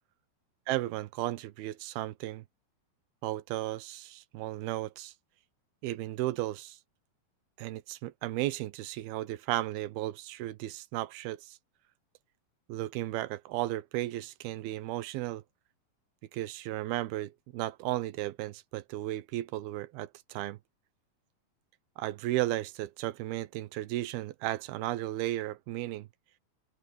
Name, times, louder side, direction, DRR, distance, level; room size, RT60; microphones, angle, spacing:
voice 1, 0.7-2.4 3.2-5.1 5.8-6.8 7.6-11.6 12.7-15.4 16.3-20.6 22.0-26.1, right 16 dB, 85° right, 2.8 m, -34 dB
open air
omnidirectional pair, 4.3 m